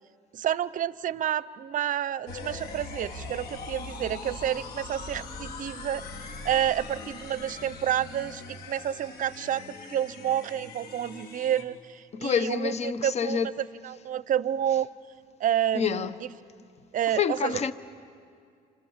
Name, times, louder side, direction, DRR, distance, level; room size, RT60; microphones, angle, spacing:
voice 1, 0.3-6.0 6.4-12.7 13.0-13.4 13.8-14.9 15.4-16.1 16.9-17.6, right 10 dB, 50° right, 0.6 m, -29 dB
sound 1, 2.3-11.6, left 3 dB, 65° left, 3.3 m, -41 dB
voice 2, 12.1-13.5 15.7-16.2 17.1-17.7, left 7 dB, 40° left, 1.0 m, -27 dB
29.5 x 27.0 x 7.3 m
cardioid pair, 110°, 17 cm